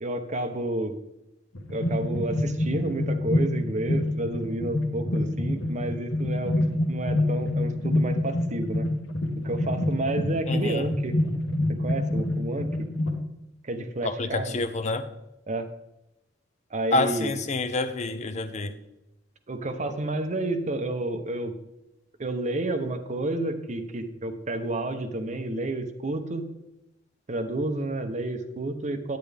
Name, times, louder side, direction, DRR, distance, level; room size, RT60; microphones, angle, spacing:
voice 1, 0.0-1.0 1.7-8.9 9.4-11.2 11.7-12.9 13.6-14.6 15.5-15.7 16.7-17.3 19.5-21.6 22.2-26.5 27.3-29.2, right 2 dB, 40° right, 8 dB, 0.8 m, -30 dB
sound 1, 1.5-13.2, left 1 dB, 75° left, 1.3 m, -27 dB
voice 2, 10.5-11.0 14.0-15.1 16.9-18.7, left 2 dB, 40° left, 10 dB, 0.6 m, -28 dB
9.2 x 9.1 x 3.4 m, 0.92 s
head